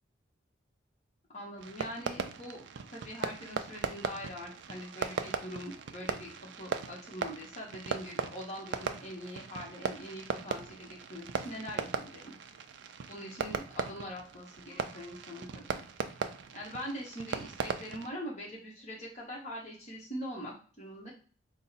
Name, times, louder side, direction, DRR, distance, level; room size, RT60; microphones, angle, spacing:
voice 1, 1.3-2.6 2.9-6.3 6.6-12.3 13.1-15.8 16.5-21.1, equal, 35° left, -3 dB, 1.2 m, -43 dB
Fireworks, 1.6-18.1, right 5 dB, 65° right, 0.4 m, -38 dB
3.7 x 2.2 x 4.1 m, 0.41 s
head